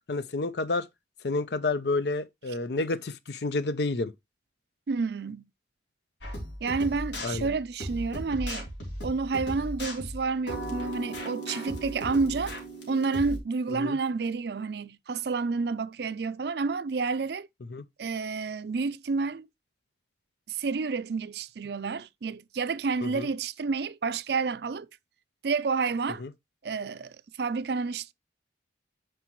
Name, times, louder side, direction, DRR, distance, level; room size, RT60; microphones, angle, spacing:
voice 1, 0.1-0.9 1.2-4.1 7.2-7.5 13.7-14.0 17.7-17.8 23.0-23.3 26.2-26.3, left 3 dB, 65° left, 0.6 m, -29 dB
voice 2, 4.9-5.5 6.6-8.7 9.0-12.5 12.9-17.5 18.0-19.5 20.5-24.9 25.4-26.2 26.6-28.1, right 4 dB, 65° right, 0.4 m, -30 dB
sound 1, 6.2-13.4, equal, 85° left, 3.3 m, -36 dB
9.9 x 4.7 x 3.1 m
head